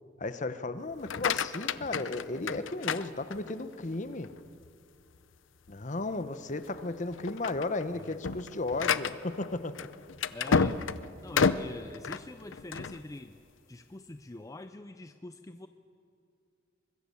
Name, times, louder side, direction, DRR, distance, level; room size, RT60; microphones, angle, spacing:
voice 1, 0.2-4.3 5.7-9.9, left 2 dB, 40° left, 11 dB, 1.0 m, -35 dB
sound 1, 0.9-3.7 4.2-4.7 5.1-5.2 5.7-5.8 6.5-6.8 7.1-13.0, left 5 dB, 75° left, 0.7 m, -31 dB
voice 2, 10.3-10.8 11.2-13.4 13.7-15.7, left 2 dB, 15° left, 9 dB, 0.5 m, -44 dB
24.0 x 21.5 x 7.0 m, 2.5 s
head